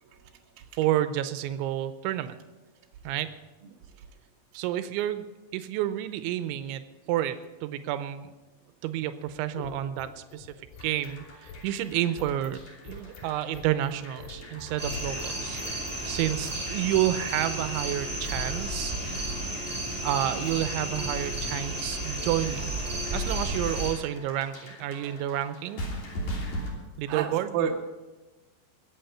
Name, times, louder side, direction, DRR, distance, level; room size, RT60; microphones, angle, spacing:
voice 1, 0.0-0.6 4.0-4.1 14.4-14.8 15.8-16.2 27.1-27.7, right 7 dB, 70° right, 1 dB, 2.4 m, -34 dB
voice 2, 0.8-2.4 3.0-3.4 4.5-5.3 5.5-6.8 7.1-8.3 8.8-10.5 10.8-12.6 12.8-15.6 16.1-18.9 19.2-19.3 20.0-22.7 23.1-25.8 27.0-27.5, right 12 dB, 85° right, 11 dB, 3.1 m, -30 dB
sound 1, 9.2-16.1, left 5 dB, 80° left, 4.2 m, -46 dB
sound 2, 10.8-26.7, equal, 40° left, 3.8 m, -43 dB
sound 3, 14.8-23.9, right 1 dB, 10° right, 4.3 m, -32 dB
21.5 x 8.6 x 5.7 m, 1.1 s
omnidirectional pair, 5.3 m